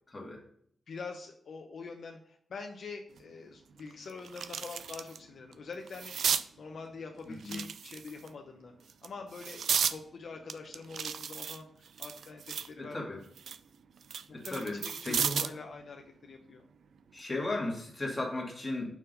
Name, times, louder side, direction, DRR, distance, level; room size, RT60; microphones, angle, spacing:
voice 1, 0.1-0.5 7.3-7.6 12.8-13.2 14.3-14.8 15.1-15.5 17.1-18.9, left 2 dB, 25° left, -1 dB, 1.8 m, -35 dB
voice 2, 0.9-13.2 14.3-16.7, left 4 dB, 65° left, 3 dB, 0.8 m, -45 dB
sound 1, 3.2-3.3 3.7-5.2 5.5-6.5 7.4-8.3 8.9-10.0 10.5-12.7 13.1-15.6 17.0-17.2, right 7 dB, 80° right, 0.4 m, -34 dB
5.9 x 4.5 x 5.2 m, 0.66 s
wide cardioid pair, 145°, 0 cm